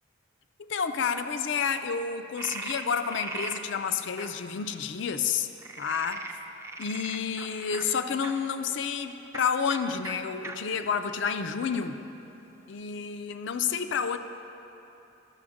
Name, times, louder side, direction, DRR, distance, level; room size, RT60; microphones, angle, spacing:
voice 1, 0.6-5.5 5.8-6.2 6.8-12.0 12.7-14.2, left 6 dB, 65° left, 9 dB, 0.4 m, -30 dB
Frog, 2.4-3.6 4.2-4.3 5.6-8.3 9.3-9.4 9.7-9.8 10.0-10.1 10.4-10.6 11.2-11.9, right 3 dB, 15° right, 0.4 m, -39 dB
12.0 x 6.0 x 5.0 m, 2.9 s
head